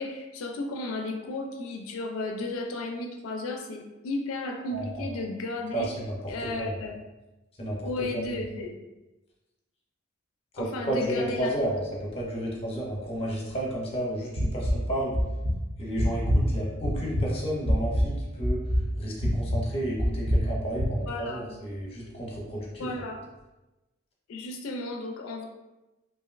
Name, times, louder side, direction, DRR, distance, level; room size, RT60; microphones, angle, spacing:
voice 1, 0.0-5.9 6.3-7.0 7.8-8.8 10.6-11.6 21.1-21.4 22.8-23.2 24.3-25.5, left 2 dB, 90° left, 2 dB, 0.4 m, -34 dB
voice 2, 4.7-5.2 5.7-6.8 7.6-8.2 10.5-15.2 15.8-18.6 19.0-22.9, right 1 dB, 30° left, -3 dB, 0.7 m, -32 dB
sound 1, 14.4-14.8 15.1-15.5 16.0-16.4 16.8-17.3 17.6-18.1 18.4-18.9 19.2-19.6 20.0-20.5 20.8-20.9, equal, 30° right, 0.5 m, -24 dB
3.0 x 2.5 x 2.4 m, 1.0 s
head